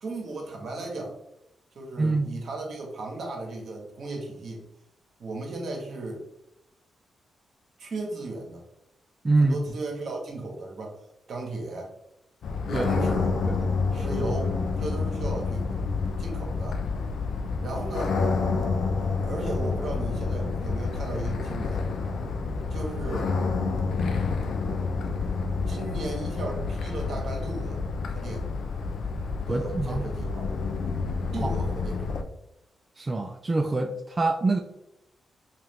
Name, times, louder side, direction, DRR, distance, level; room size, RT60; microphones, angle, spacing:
voice 1, 0.0-1.2 1.7-4.6 5.2-6.3 7.8-8.6 9.4-11.0 11.3-11.9 12.7-13.3 13.9-15.8 16.2-16.8 17.6-18.2 19.2-21.8 22.7-23.3 25.7-27.8 28.1-28.5 29.5-30.5 31.3-32.1, right 2 dB, 65° right, 0 dB, 1.0 m, -35 dB
voice 2, 2.0-2.3 9.2-9.6 12.7-13.1 13.4-13.6 29.5-30.0 31.4-31.5 33.0-34.6, right 3 dB, 35° right, 3 dB, 0.3 m, -25 dB
sound 1, 12.4-32.2, left 4 dB, 70° left, 0.4 m, -29 dB
2.8 x 2.4 x 3.3 m, 0.84 s
hypercardioid pair, 45°, 0 cm